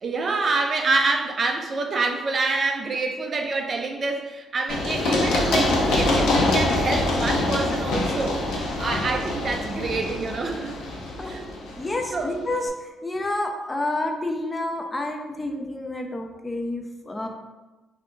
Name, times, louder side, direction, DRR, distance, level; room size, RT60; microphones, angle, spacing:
voice 1, 0.0-10.7 11.2-11.5 12.1-12.3, right 3 dB, 45° right, 3 dB, 0.4 m, -27 dB
Run, 4.7-12.3, left 2 dB, 85° left, 0.6 m, -24 dB
voice 2, 11.8-17.3, left 2 dB, 20° left, 3 dB, 0.4 m, -29 dB
2.7 x 2.2 x 3.6 m, 1.2 s
cardioid pair, 90°, 0 cm